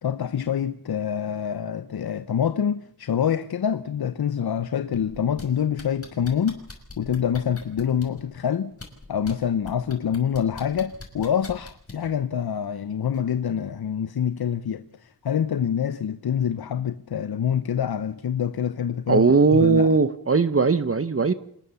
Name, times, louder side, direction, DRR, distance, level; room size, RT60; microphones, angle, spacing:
voice 1, 0.0-6.6 7.0-8.7 9.1-19.3 19.5-19.9, left 8 dB, 80° left, 0.9 m, -26 dB
sound 1, 4.9-5.4 5.8-8.2 8.7-9.3 9.7-12.1 13.1-13.2, left 3 dB, 40° left, 5.7 m, -40 dB
voice 2, 19.1-21.3, right 4 dB, 35° right, 0.9 m, -19 dB
25.5 x 20.0 x 7.0 m
wide cardioid pair, 80°, 37 cm